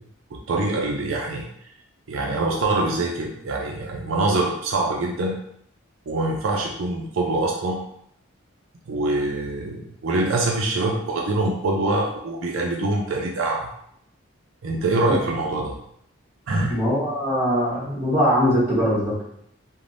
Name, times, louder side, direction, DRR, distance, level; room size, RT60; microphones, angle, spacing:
voice 1, 0.5-1.5 2.1-5.4 6.1-7.8 8.9-13.7 14.6-15.8 16.5-16.7, right 2 dB, 70° right, -1 dB, 0.4 m, -24 dB
voice 2, 16.7-19.2, equal, 10° right, -9 dB, 1.0 m, -21 dB
3.3 x 2.0 x 2.5 m, 0.72 s
head